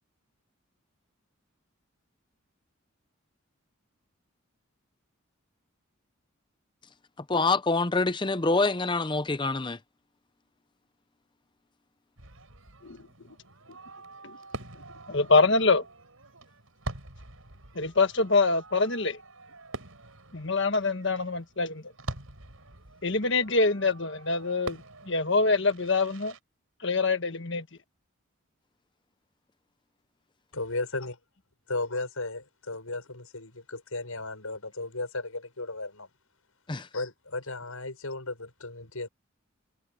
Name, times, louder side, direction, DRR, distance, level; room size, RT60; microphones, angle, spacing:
voice 1, 7.3-9.8 36.7-36.9, left 3 dB, 20° left, 0.6 m, -26 dB
Fireworks, 12.2-26.4, right 2 dB, 75° right, 5.1 m, -45 dB
voice 2, 15.1-15.8 17.7-19.2 20.3-21.8 23.0-26.3 26.8-27.7, left 3 dB, 55° left, 1.6 m, -25 dB
voice 3, 30.5-31.1 31.7-36.1 36.9-39.1, left 2 dB, 85° left, 6.7 m, -35 dB
head